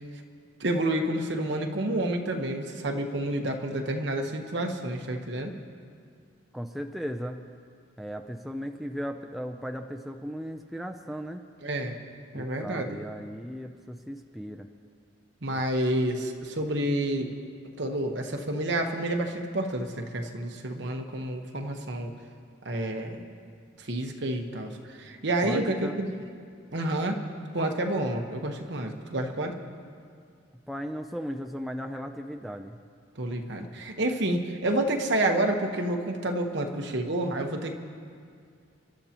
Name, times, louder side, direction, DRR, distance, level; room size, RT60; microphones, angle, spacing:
voice 1, 0.6-5.5 11.6-12.0 12.3-13.0 15.4-17.3 17.8-22.1 22.6-23.2 23.8-26.1 26.7-27.2 27.5-29.5 33.2-37.7, right 1 dB, 60° right, 3 dB, 1.2 m, -29 dB
voice 2, 6.5-7.4 8.0-11.4 12.3-14.7 15.5-15.6 25.4-26.0 30.7-32.8, equal, ahead, 3 dB, 0.4 m, -36 dB
29.5 x 12.0 x 3.0 m, 2.3 s
head